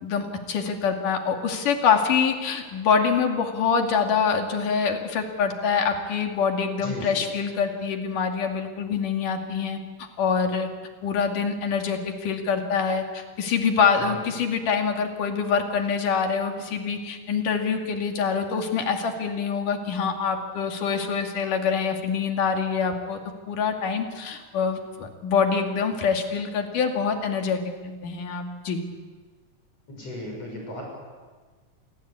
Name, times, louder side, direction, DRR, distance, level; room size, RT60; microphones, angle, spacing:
voice 1, 0.0-9.8 10.2-10.7 11.0-23.2 23.5-28.8, left 6 dB, 65° left, 4 dB, 3.9 m, -25 dB
voice 2, 6.8-7.2 14.0-14.2 29.9-30.8, left 1 dB, 45° left, 0 dB, 7.4 m, -36 dB
28.0 x 21.5 x 8.5 m, 1.4 s
omnidirectional pair, 4.0 m